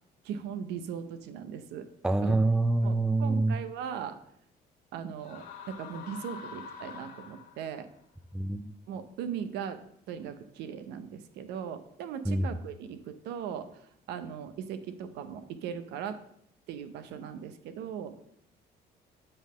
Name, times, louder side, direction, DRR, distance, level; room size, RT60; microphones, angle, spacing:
voice 1, 0.2-1.9 2.2-2.4 2.8-4.2 4.9-7.9 8.9-9.8 10.1-13.7 14.1-16.2 16.7-18.2, right 8 dB, 85° right, 11 dB, 0.7 m, -38 dB
voice 2, 2.0-3.6 8.3-8.7 12.3-12.5, right 2 dB, 5° right, 13 dB, 0.4 m, -26 dB
sound 1, 5.2-7.8, left 6 dB, 70° left, 1.9 m, -45 dB
8.0 x 3.6 x 6.2 m, 0.71 s
cardioid pair, 110°, 17 cm